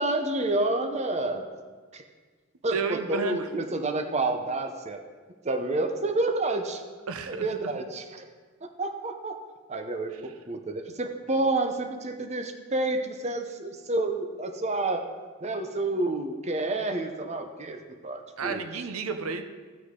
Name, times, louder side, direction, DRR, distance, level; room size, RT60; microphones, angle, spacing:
voice 1, 0.0-1.4 1.9-2.0 2.6-5.0 5.4-6.8 7.3-8.2 8.8-9.4 9.7-15.0 15.4-18.6, right 2 dB, 30° right, 5 dB, 0.7 m, -29 dB
voice 2, 2.7-3.5 7.1-7.5 18.4-19.4, right 4 dB, 80° right, 8 dB, 0.7 m, -31 dB
15.5 x 6.5 x 3.8 m, 1.5 s
head